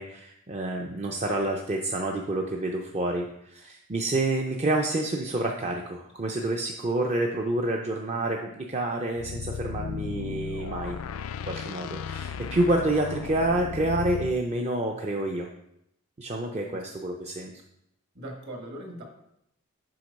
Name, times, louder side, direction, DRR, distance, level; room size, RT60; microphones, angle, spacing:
voice 1, 0.0-11.0 11.4-15.5 16.2-17.5, right 2 dB, 30° right, 1 dB, 0.5 m, -28 dB
sound 1, 9.2-14.4, left 7 dB, 75° left, 0.3 m, -35 dB
voice 2, 18.1-19.0, right 1 dB, 55° right, 1 dB, 1.6 m, -39 dB
7.6 x 4.5 x 5.3 m, 0.78 s
head